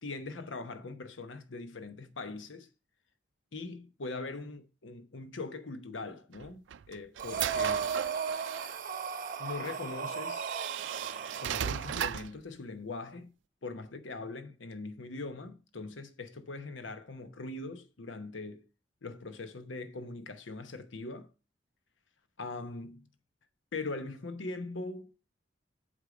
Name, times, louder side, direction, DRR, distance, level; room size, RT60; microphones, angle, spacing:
voice 1, 0.0-2.7 3.5-7.9 9.4-10.5 11.4-13.3 13.6-18.6 19.0-21.3 22.4-23.1 23.7-25.2, left 3 dB, 80° left, 0.9 m, -41 dB
sound 1, 6.3-8.8 9.7-9.8 10.4-12.4, right 9 dB, 75° right, 0.4 m, -37 dB
Breathing, 7.2-12.1, right 6 dB, 45° right, 0.9 m, -36 dB
8.3 x 5.5 x 4.9 m
head